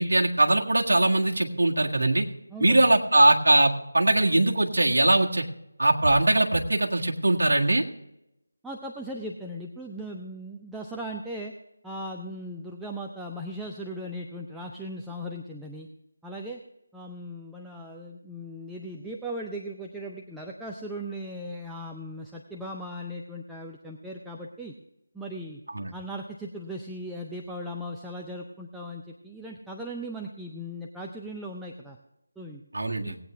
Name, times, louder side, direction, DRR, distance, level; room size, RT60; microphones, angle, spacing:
voice 1, 0.0-2.3 2.6-5.5 5.8-7.8 25.7-25.9 32.7-33.2, right 2 dB, 60° right, 0 dB, 1.7 m, -21 dB
voice 2, 2.5-2.9 8.6-11.5 11.8-15.9 16.2-16.6 16.9-24.7 25.1-25.6 25.9-32.0 32.4-32.6 33.0-33.2, equal, 5° right, -2 dB, 0.5 m, -38 dB
18.5 x 8.9 x 3.4 m, 0.87 s
figure-of-eight pair, 160°, 0 cm